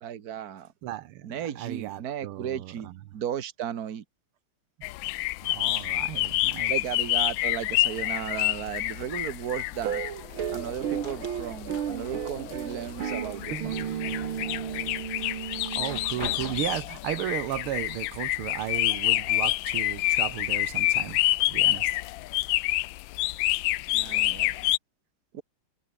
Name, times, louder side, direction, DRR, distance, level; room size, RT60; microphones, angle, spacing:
voice 1, 0.0-0.7 1.2-4.0 5.6-5.9 6.7-10.0 10.5-13.9 23.9-24.6 25.3-25.4, right 9 dB, 50° right, 1.7 m, -35 dB
voice 2, 0.8-2.9 5.4-6.7 15.2-21.9, right 14 dB, 90° right, 1.7 m, -35 dB
sound 1, 4.8-24.8, left 17 dB, 75° left, 1.2 m, -28 dB
sound 2, 8.6-9.9 10.2-11.8 12.1-13.1 13.5-14.2 14.7-14.8 15.6-17.0 17.9-18.0 18.5-19.1, left 2 dB, 45° left, 7.7 m, -43 dB
sound 3, 9.8-16.4, right 9 dB, 75° right, 2.2 m, -34 dB
omnidirectional pair, 2.3 m